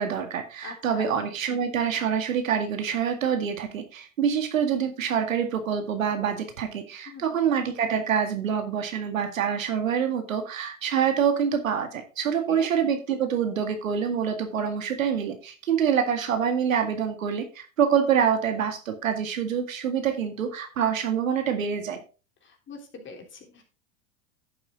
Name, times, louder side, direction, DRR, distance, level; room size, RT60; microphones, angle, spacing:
voice 1, 0.0-22.0, right 7 dB, 85° right, 7 dB, 2.0 m, -26 dB
voice 2, 0.6-1.1 7.1-7.4 12.5-12.7 22.4-23.6, left 5 dB, 30° left, 3 dB, 3.2 m, -43 dB
11.5 x 7.2 x 3.7 m, 0.33 s
hypercardioid pair, 95°, 39 cm